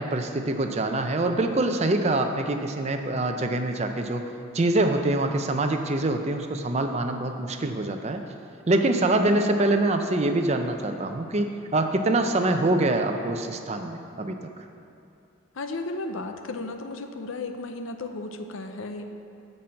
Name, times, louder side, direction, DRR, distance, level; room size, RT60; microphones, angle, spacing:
voice 1, 0.0-4.2 4.5-8.2 8.7-14.4, right 2 dB, 30° right, 5 dB, 0.5 m, -25 dB
voice 2, 15.6-19.1, left 2 dB, 75° left, 6 dB, 0.6 m, -34 dB
8.7 x 5.5 x 7.6 m, 2.5 s
head